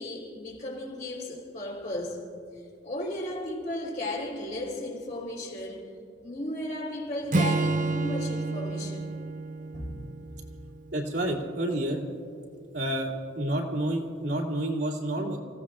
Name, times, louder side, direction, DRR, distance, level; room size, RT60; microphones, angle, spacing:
voice 1, 0.0-2.3 2.8-5.9 6.2-9.1 9.7-10.0, left 1 dB, 45° left, 3.6 m, -35 dB
Acoustic guitar / Strum, 7.3-10.8, right 3 dB, 45° right, 0.7 m, -29 dB
voice 2, 10.9-12.0 12.7-15.4, right 1 dB, 65° right, 2.7 m, -29 dB
29.5 x 16.5 x 2.5 m
head